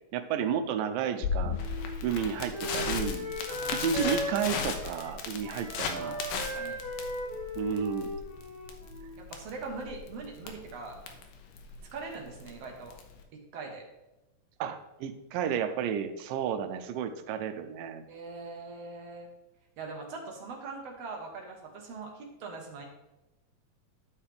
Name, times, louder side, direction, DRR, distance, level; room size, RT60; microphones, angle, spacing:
voice 1, 0.1-1.6 2.0-3.3 3.7-6.1 7.6-8.1 14.6-18.0, right 7 dB, 90° right, 8 dB, 2.3 m, -32 dB
Crackle, 1.2-13.2, left 5 dB, 80° left, 2.4 m, -36 dB
Wind instrument woodwind instrument, 1.6-9.3, equal, 30° right, 1.4 m, -38 dB
voice 2, 3.5-4.0 5.9-6.8 9.2-11.0 11.9-13.0 13.3-13.8 18.1-19.3 19.8-22.9, right 3 dB, 60° right, 1 dB, 1.9 m, -42 dB
11.5 x 5.7 x 3.4 m, 0.97 s
omnidirectional pair, 3.9 m